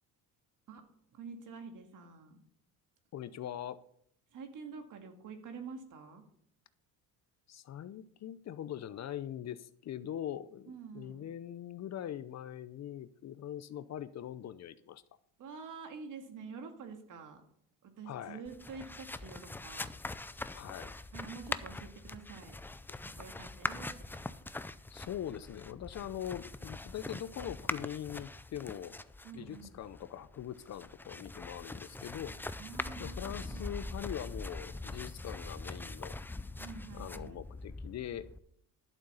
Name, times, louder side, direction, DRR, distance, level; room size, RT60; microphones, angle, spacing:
voice 1, 1.1-2.4 4.3-6.2 10.7-11.3 15.4-17.4 17.8-19.9 21.1-22.5 23.1-24.2 29.2-29.8 32.6-34.0 36.6-37.4, right 5 dB, 55° right, 5 dB, 2.1 m, -47 dB
voice 2, 3.1-3.8 7.5-15.0 18.0-18.4 20.5-20.9 24.9-29.0 29.3-32.3 33.0-36.2 36.9-38.3, left 10 dB, 45° left, 14 dB, 0.7 m, -42 dB
sound 1, 18.4-38.4, left 2 dB, 5° left, 0.4 m, -43 dB
11.5 x 7.4 x 5.6 m, 0.70 s
cardioid pair, 100°, 37 cm